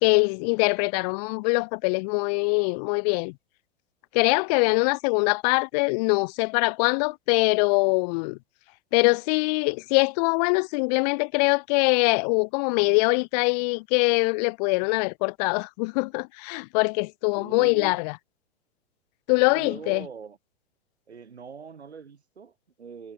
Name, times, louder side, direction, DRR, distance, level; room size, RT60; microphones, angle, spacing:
voice 1, 0.0-3.3 4.1-8.4 8.9-18.1 19.3-20.0, left 30 dB, 40° left, 0.6 m, -23 dB
voice 2, 17.3-18.0 19.5-20.4 21.1-23.1, right 6 dB, 80° right, 3.5 m, -42 dB
figure-of-eight pair, 100°, 32 cm